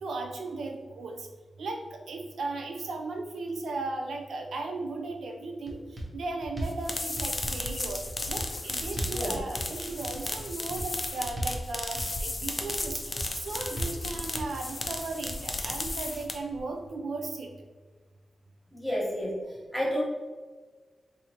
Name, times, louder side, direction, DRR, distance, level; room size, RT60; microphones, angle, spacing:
voice 1, 0.0-1.3 1.6-17.5, right 3 dB, 75° right, 3 dB, 0.4 m, -36 dB
sound 1, 5.7-6.1 6.4-6.8 7.2-7.7 8.1-8.5 8.8-9.2 9.6-10.1 10.5-10.9 11.2-11.6 12.0-12.5 12.9-13.3 13.6-14.0 14.4-14.9 15.3-15.4, right 1 dB, 15° right, 0.6 m, -37 dB
sound 2, 6.6-16.6, left 2 dB, 25° left, 0.4 m, -34 dB
voice 2, 9.1-9.4 18.7-20.0, equal, 5° left, -6 dB, 1.1 m, -31 dB
4.2 x 2.7 x 2.8 m, 1.4 s
wide cardioid pair, 165°, 0 cm